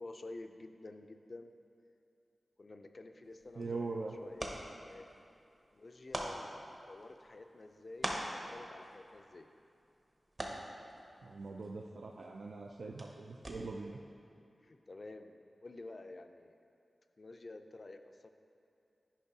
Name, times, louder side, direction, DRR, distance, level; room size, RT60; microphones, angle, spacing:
voice 1, 0.0-1.5 2.6-4.5 4.9-5.1 5.7-9.5 14.6-16.6 17.2-18.3, left 2 dB, 50° left, 7 dB, 0.4 m, -50 dB
sound 1, 3.2-14.0, right 1 dB, 45° right, 0.9 m, -46 dB
voice 2, 3.6-4.1 11.2-14.0, right 3 dB, 80° right, 0 dB, 0.3 m, -42 dB
10.5 x 5.1 x 2.7 m, 2.7 s
wide cardioid pair, 65°, 0 cm